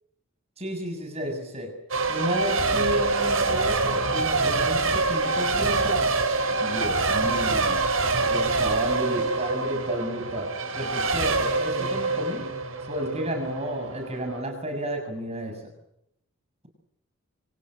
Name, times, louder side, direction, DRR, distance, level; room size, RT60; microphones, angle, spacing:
voice 1, 0.6-1.8 2.1-6.0 6.5-7.9 8.3-12.5 12.9-15.7, right 1 dB, 30° right, 5 dB, 6.8 m, -32 dB
Race car auto racing / Accelerating revving vroom / Mechanisms, 1.9-14.4, right 3 dB, 90° right, 6.5 m, -25 dB
29.5 x 27.0 x 6.4 m, 0.81 s
head